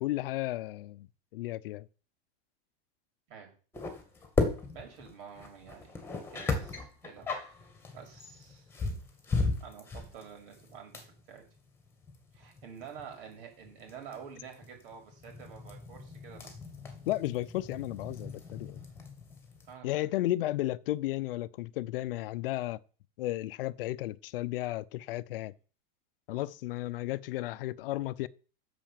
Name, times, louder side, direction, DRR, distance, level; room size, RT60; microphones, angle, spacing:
voice 1, 0.0-1.1 1.3-1.9 17.1-18.9 19.8-22.8 23.2-25.5 26.3-28.3, left 16 dB, 70° left, 0.8 m, -33 dB
sound 1, 3.7-19.7, left 3 dB, 10° left, 2.1 m, -37 dB
voice 2, 4.7-8.7 9.3-11.4 12.3-16.5 19.6-20.3, right 7 dB, 65° right, 6.3 m, -49 dB
10.5 x 7.0 x 7.5 m
supercardioid pair, 165°, 29 cm